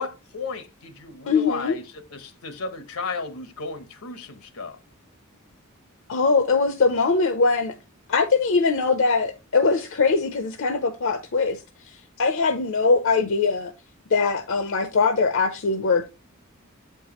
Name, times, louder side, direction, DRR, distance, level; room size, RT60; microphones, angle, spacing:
voice 1, 0.0-1.8 2.1-4.8, left 4 dB, 85° left, 1.0 m, -34 dB
voice 2, 1.3-1.8 6.1-7.7 8.1-13.7 14.1-16.1, left 4 dB, 65° left, 0.6 m, -22 dB
7.9 x 4.6 x 2.9 m
head